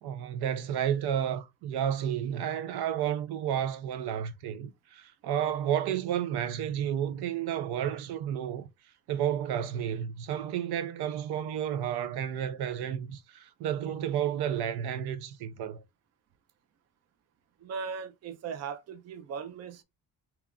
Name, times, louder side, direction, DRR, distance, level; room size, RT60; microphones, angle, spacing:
voice 1, 0.0-8.6 9.1-15.8, right 9 dB, 85° right, 0.6 m, -31 dB
voice 2, 17.6-19.8, right 6 dB, 45° right, 0.5 m, -38 dB
2.9 x 2.4 x 3.5 m
cardioid pair, 160°, 38 cm